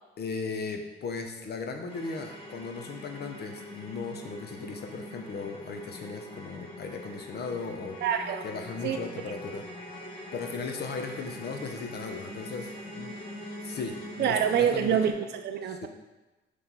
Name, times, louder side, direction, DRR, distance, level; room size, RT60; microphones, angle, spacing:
voice 1, 0.2-8.0 8.4-9.7 10.3-13.2 13.6-15.0 15.7-15.9, left 4 dB, 55° left, 4 dB, 0.8 m, -37 dB
sound 1, 1.9-15.1, left 1 dB, 25° left, 1.3 m, -43 dB
voice 2, 8.0-8.5 8.8-9.0 14.2-15.9, right 8 dB, 60° right, 7 dB, 0.4 m, -26 dB
5.8 x 3.3 x 5.5 m, 1.1 s
cardioid pair, 90°, 20 cm